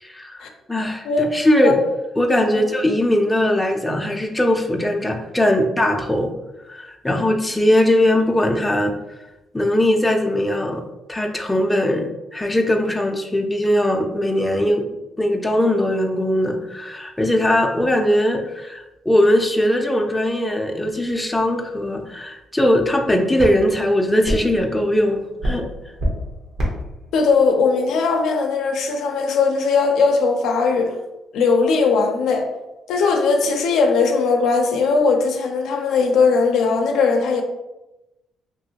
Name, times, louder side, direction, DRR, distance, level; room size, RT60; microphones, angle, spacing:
voice 1, 0.0-0.4 0.7-1.7 2.2-6.3 6.7-8.9 9.5-10.8 11.1-14.8 15.2-25.6, left 1 dB, 10° left, 2 dB, 0.4 m, -20 dB
voice 2, 1.6-1.9 2.5-2.7 7.1-7.3 27.1-30.9 31.3-32.5 32.9-37.4, left 4 dB, 80° left, 3 dB, 0.4 m, -19 dB
sound 1, 22.4-28.8, equal, 70° right, 1.0 m, -29 dB
2.9 x 2.7 x 2.8 m, 0.99 s
cardioid pair, 90°, 0 cm